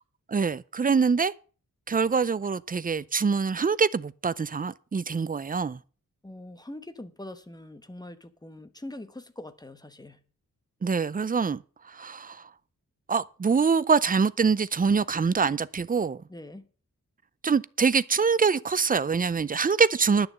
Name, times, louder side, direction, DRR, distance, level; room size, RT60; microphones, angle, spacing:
voice 1, 0.3-1.3 1.9-5.8 10.8-11.6 11.9-12.5 13.1-16.2 17.4-20.3, right 5 dB, 25° right, 0.5 m, -24 dB
voice 2, 6.2-10.2 16.3-16.7, left 1 dB, 10° left, 1.1 m, -43 dB
11.0 x 6.8 x 7.3 m
wide cardioid pair, 120°, 32 cm